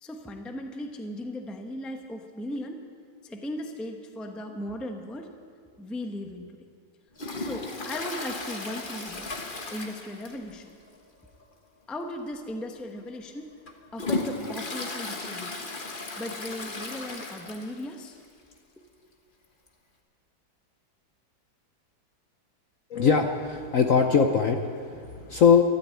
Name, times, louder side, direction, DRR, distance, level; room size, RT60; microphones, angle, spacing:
voice 1, 0.0-2.8 3.2-5.3 5.8-6.6 7.3-9.3 9.7-10.7 11.9-13.5 13.9-15.6 16.2-18.2, left 1 dB, ahead, 4 dB, 0.6 m, -37 dB
Toilet flush, 7.2-10.6 10.9-11.0 11.4-11.5 12.3-12.5 13.0-17.9 18.2-18.3 18.5-18.6 19.7-19.8, left 3 dB, 30° left, 1.3 m, -35 dB
voice 2, 22.9-25.6, left 6 dB, 60° left, 5 dB, 0.9 m, -21 dB
13.5 x 12.5 x 8.4 m, 2.2 s
omnidirectional pair, 2.1 m